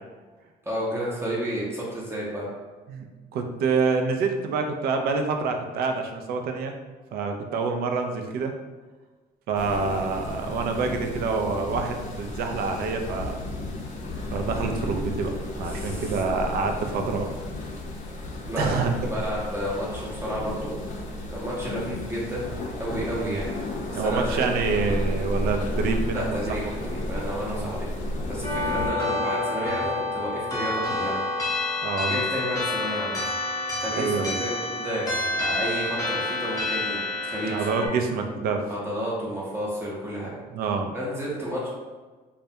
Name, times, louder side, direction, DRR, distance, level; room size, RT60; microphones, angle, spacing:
voice 1, 0.6-2.4 15.6-16.2 16.9-17.0 18.5-20.7 21.3-22.5 22.8-24.5 26.1-27.9 28.3-31.2 32.0-33.2 33.8-37.7 38.7-40.3 40.9-41.7, equal, 15° right, -6 dB, 0.6 m, -31 dB
voice 2, 3.3-6.7 7.1-8.5 9.5-13.5 14.3-17.3 18.6-18.9 23.1-23.4 23.9-26.6 27.5-27.8 31.8-32.2 33.9-34.4 37.5-38.6 40.5-40.9, right 4 dB, 65° right, 4 dB, 0.4 m, -27 dB
sound 1, 9.5-28.9, left 1 dB, 45° left, 0.5 m, -33 dB
sound 2, 28.4-37.9, left 2 dB, 20° left, 0.8 m, -28 dB
2.2 x 2.1 x 2.7 m, 1.4 s
cardioid pair, 110°, 17 cm